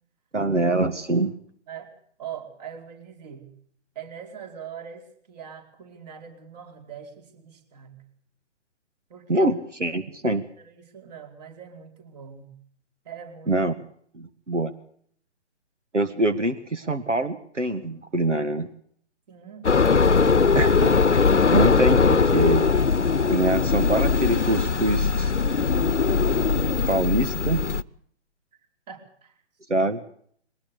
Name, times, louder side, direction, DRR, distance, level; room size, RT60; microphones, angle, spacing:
voice 1, 0.3-1.3 9.3-10.4 13.5-13.7 14.1-14.7 15.9-18.7 20.6-21.2 21.5-22.7 23.3-25.3 26.9-27.6 29.7-30.0, right 2 dB, 85° right, 10 dB, 1.9 m, -24 dB
voice 2, 1.7-3.5 3.9-8.0 9.1-9.5 9.9-12.5 13.0-13.6 19.3-20.7 28.9-29.4, right 7 dB, 35° right, 6 dB, 4.8 m, -42 dB
sound 1, 19.6-27.8, left 5 dB, 75° left, 1.0 m, -20 dB
22.5 x 19.5 x 6.8 m, 0.62 s
figure-of-eight pair, 135°, 35 cm